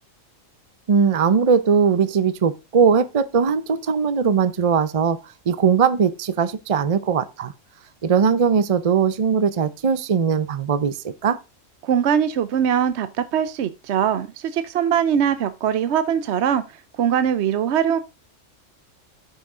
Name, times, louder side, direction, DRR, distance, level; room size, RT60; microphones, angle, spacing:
voice 1, 0.9-5.2 5.5-7.5 8.0-11.4, right 6 dB, 40° right, 0.5 m, -20 dB
voice 2, 11.8-16.6 17.0-18.0, right 8 dB, 65° right, 0.9 m, -21 dB
9.0 x 6.0 x 3.7 m
omnidirectional pair, 1.3 m